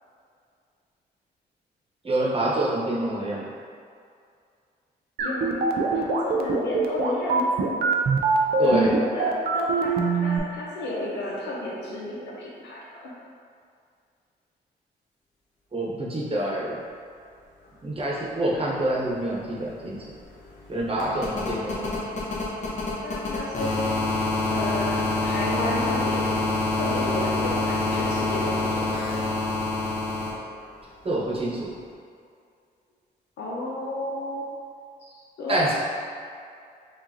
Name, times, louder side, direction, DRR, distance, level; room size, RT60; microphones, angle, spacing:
voice 1, 2.0-3.5 8.6-8.9 15.7-16.8 17.8-20.0 20.7-22.0 31.0-31.7 35.5-35.7, right 1 dB, 30° right, -5 dB, 1.0 m, -26 dB
voice 2, 5.2-7.8 8.5-13.1 23.0-24.0 24.5-26.5 26.8-29.2 33.4-34.5 35.0-35.7, left 1 dB, 75° left, -5 dB, 0.9 m, -32 dB
sound 1, 5.2-10.4, right 4 dB, 65° right, 0.5 m, -23 dB
sound 2, 19.1-19.2 19.4-30.3 31.7-31.8, left 2 dB, 45° left, 1.1 m, -27 dB
4.9 x 2.6 x 2.8 m, 2.3 s
cardioid pair, 75°, 18 cm